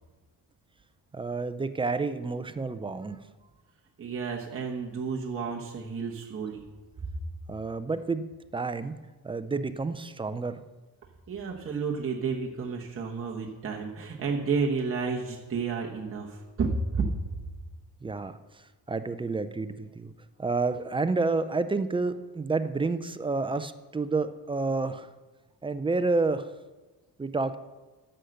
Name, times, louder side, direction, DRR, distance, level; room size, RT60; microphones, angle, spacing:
voice 1, 1.1-3.2 7.5-8.2 8.5-8.9 9.2-10.6 18.0-18.4 18.9-20.1 20.4-25.1 25.6-26.5 27.2-27.6, right 3 dB, 15° right, 11 dB, 0.4 m, -29 dB
voice 2, 4.0-6.6 11.3-17.1, right 5 dB, 35° right, -1 dB, 1.1 m, -31 dB
10.0 x 6.5 x 6.5 m, 1.2 s
cardioid pair, 135°, 41 cm